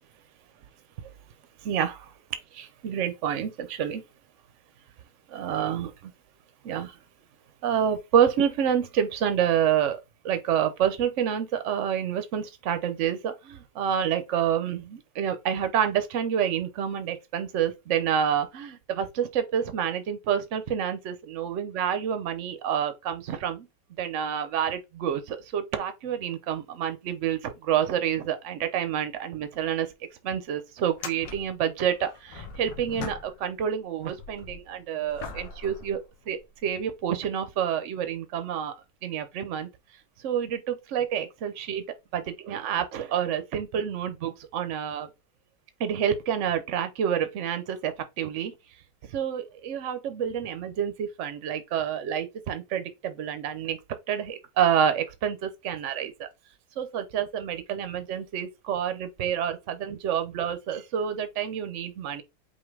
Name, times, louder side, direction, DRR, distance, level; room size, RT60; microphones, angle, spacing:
voice 1, 1.6-2.1 2.6-4.0 5.3-6.1 6.6-7.0 7.6-10.0 10.2-23.7 24.0-29.9 30.2-36.0 36.3-38.7 39.0-39.7 40.2-41.8 42.1-45.1 45.8-48.5 49.1-53.8 54.1-56.3 56.8-62.2, right 9 dB, 60° right, 0.8 m, -28 dB
sound 1, 29.5-29.6 29.9-30.0 30.8-33.7 34.0-36.7 37.4-37.5 41.6-41.8 43.1-43.2, left 5 dB, 75° left, 1.6 m, -42 dB
5.5 x 2.5 x 3.3 m
omnidirectional pair, 2.0 m